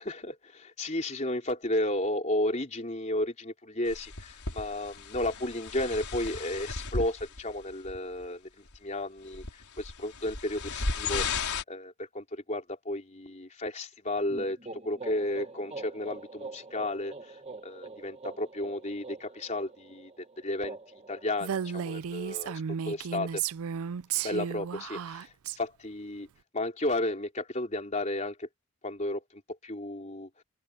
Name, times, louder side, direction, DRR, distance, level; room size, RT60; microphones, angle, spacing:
voice 1, 0.0-9.4 9.8-11.2 11.7-14.6 14.8-17.3 17.6-20.1 20.4-20.8 21.1-23.4 24.2-25.2 25.6-26.3 26.5-28.5 28.8-30.3, left 1 dB, 30° left, 3.9 m, -33 dB
sound 1, 3.9-7.5 7.8-8.2 8.7-8.8 9.3-11.6, left 4 dB, 90° left, 5.2 m, -35 dB
sound 2, 14.3-22.0, right 3 dB, 25° right, 1.5 m, -45 dB
Female speech woman speaking, 21.4-25.6, right 8 dB, 75° right, 0.4 m, -34 dB
head